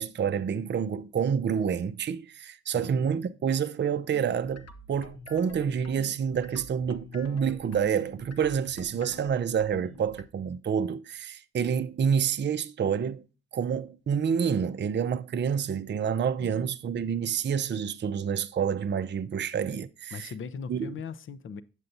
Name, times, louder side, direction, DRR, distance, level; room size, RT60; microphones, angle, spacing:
voice 1, 0.0-13.2 13.5-20.3 20.7-20.9, right 7 dB, 40° right, 0.6 m, -28 dB
voice 2, 2.7-3.1 16.4-16.7 20.1-21.6, left 6 dB, 45° left, 0.6 m, -40 dB
sound 1, 4.1-10.2, left 2 dB, 60° left, 1.0 m, -48 dB
8.1 x 7.5 x 2.7 m
hypercardioid pair, 45°, 29 cm